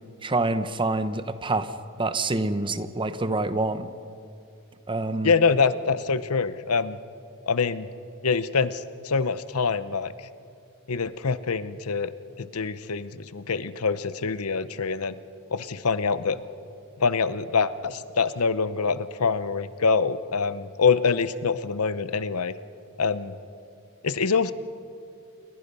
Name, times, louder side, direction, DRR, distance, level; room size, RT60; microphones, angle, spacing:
voice 1, 0.2-1.7 2.0-3.9 4.9-5.3, right 2 dB, 25° right, 12 dB, 0.8 m, -26 dB
voice 2, 5.2-7.0 7.5-7.9 8.2-10.1 10.9-12.1 12.4-15.2 15.5-16.4 17.0-22.5 23.0-23.4 24.0-24.5, left 5 dB, 85° left, 14 dB, 0.9 m, -25 dB
28.5 x 22.5 x 5.5 m, 2.5 s
head